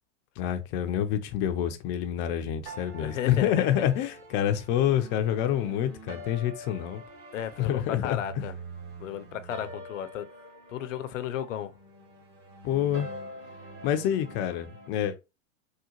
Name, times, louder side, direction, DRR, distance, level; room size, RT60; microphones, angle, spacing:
voice 1, 0.4-7.0 7.6-8.2 12.6-13.1 13.8-15.2, left 10 dB, 30° left, 0.4 m, -27 dB
sound 1, 2.7-14.9, right 1 dB, 35° right, 1.3 m, -45 dB
voice 2, 3.0-3.9 7.3-8.5 9.0-10.3 10.7-11.7, left 10 dB, 75° left, 0.6 m, -34 dB
3.7 x 2.2 x 2.8 m
hypercardioid pair, 115°, 38 cm